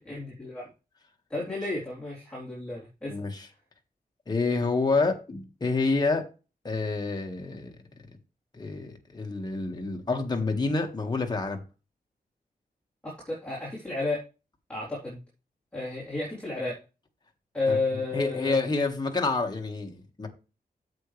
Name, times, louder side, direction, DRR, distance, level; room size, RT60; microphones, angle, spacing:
voice 1, 0.1-0.7 1.3-3.1 13.0-14.2 14.7-15.2 15.7-16.8 17.5-18.5, left 3 dB, 5° left, 3.6 m, -32 dB
voice 2, 3.1-3.5 4.3-6.3 6.6-7.7 8.5-11.6 17.7-17.8 18.1-20.3, left 3 dB, 25° left, 1.7 m, -28 dB
9.1 x 7.6 x 3.3 m
wide cardioid pair, 175°, 16 cm